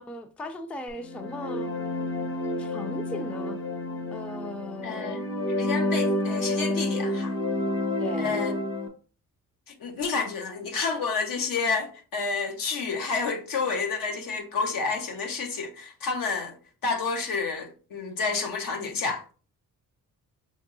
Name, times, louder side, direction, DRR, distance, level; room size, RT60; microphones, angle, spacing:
voice 1, 0.0-1.7 2.6-3.6 4.1-5.2 8.0-8.4, left 2 dB, 5° left, 0.3 m, -37 dB
sound 1, 1.0-8.9, left 1 dB, 40° left, 1.1 m, -29 dB
voice 2, 4.8-5.2 5.6-7.3 8.2-8.5 9.7-16.5 16.8-19.2, left 4 dB, 80° left, 1.2 m, -29 dB
5.2 x 3.5 x 2.6 m
wide cardioid pair, 145°, 33 cm